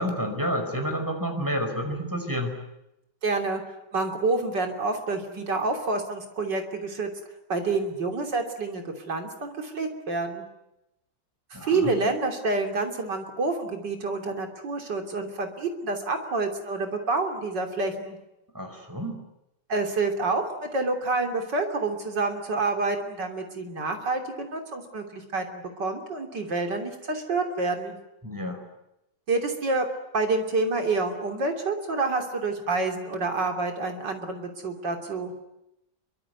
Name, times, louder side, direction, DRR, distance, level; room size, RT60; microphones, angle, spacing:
voice 1, 0.0-2.5 11.5-11.9 18.5-19.2 28.2-28.6, equal, 10° right, 5 dB, 5.0 m, -29 dB
voice 2, 3.2-3.6 3.9-7.1 7.5-10.5 11.6-18.2 19.7-28.0 29.3-29.9 30.1-35.3, right 3 dB, 65° right, 4 dB, 3.8 m, -28 dB
25.5 x 24.0 x 9.6 m, 0.88 s
omnidirectional pair, 2.1 m